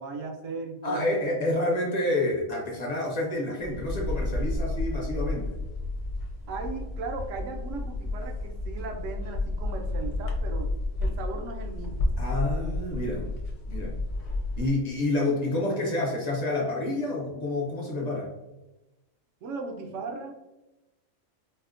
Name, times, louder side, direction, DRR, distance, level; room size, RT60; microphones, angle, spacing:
voice 1, 0.0-1.4 6.5-10.7 11.0-12.0 19.4-20.4, right 3 dB, 75° right, 3 dB, 0.9 m, -37 dB
voice 2, 0.8-5.5 12.2-13.3 13.7-14.0 14.6-18.3, left 2 dB, 45° left, -2 dB, 0.5 m, -28 dB
sound 1, 3.6-14.7, left 2 dB, 70° left, 1.0 m, -31 dB
4.2 x 2.1 x 2.5 m, 1.0 s
omnidirectional pair, 1.4 m